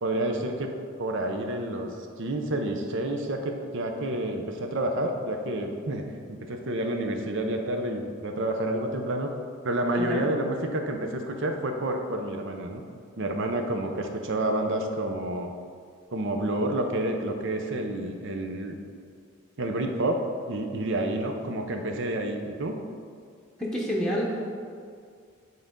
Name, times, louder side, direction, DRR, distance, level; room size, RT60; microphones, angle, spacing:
voice 1, 0.0-0.7 1.0-1.9 2.2-9.3 9.6-12.8 13.2-15.5 16.1-18.8 19.6-20.2 20.5-22.8, right 1 dB, 65° right, 4 dB, 0.7 m, -29 dB
voice 2, 23.6-24.4, equal, 5° left, -4 dB, 0.9 m, -28 dB
9.4 x 4.0 x 3.8 m, 2.1 s
head